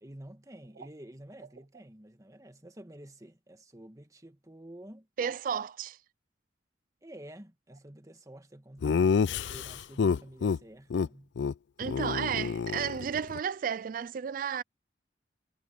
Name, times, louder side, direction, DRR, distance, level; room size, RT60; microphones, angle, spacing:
voice 1, 0.0-5.1 7.0-11.3, right 1 dB, 20° right, 1.7 m, -50 dB
voice 2, 5.2-6.0 11.8-14.6, right 7 dB, 50° right, 0.3 m, -33 dB
Laughter, 8.8-10.6 10.9-11.1 11.4-11.5 11.8-13.4, left 5 dB, 85° left, 0.4 m, -28 dB
head